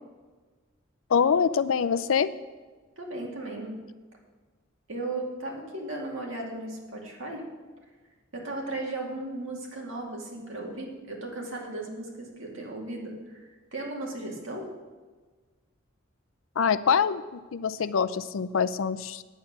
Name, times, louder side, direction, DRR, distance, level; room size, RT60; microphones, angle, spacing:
voice 1, 1.1-2.3 16.6-19.2, left 6 dB, 75° left, 14 dB, 0.5 m, -25 dB
voice 2, 3.0-3.8 4.9-7.5 8.3-14.7, right 2 dB, 75° right, -1 dB, 2.3 m, -36 dB
9.2 x 8.6 x 6.0 m, 1.4 s
head